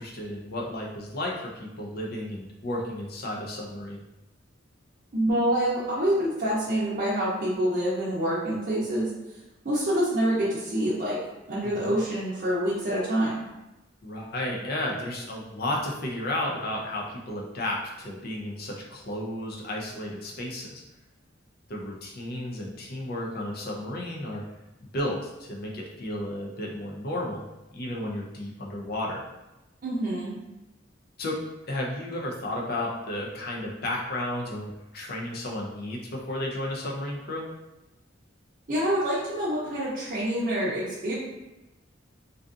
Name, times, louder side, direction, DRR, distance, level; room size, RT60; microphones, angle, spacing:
voice 1, 0.0-4.0 11.6-11.9 14.0-20.8 21.7-24.4 24.9-27.4 27.7-29.2 31.2-31.4 31.7-37.5, left 1 dB, 50° left, -1 dB, 0.5 m, -33 dB
voice 2, 5.1-9.1 9.6-11.2 11.5-13.3 29.8-30.4 38.7-41.1, right 1 dB, 45° right, -8 dB, 0.6 m, -26 dB
2.5 x 2.4 x 2.4 m, 0.98 s
head